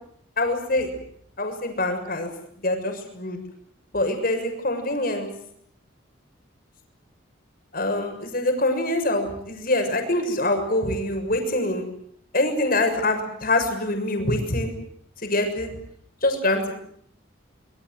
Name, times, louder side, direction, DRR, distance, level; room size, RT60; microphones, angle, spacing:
voice 1, 0.4-0.9 1.4-2.3 2.6-3.4 3.9-5.3 7.7-11.9 12.3-14.7 15.2-15.7 16.2-16.7, left 2 dB, 45° left, 5 dB, 6.9 m, -24 dB
26.5 x 24.5 x 8.1 m, 0.68 s
head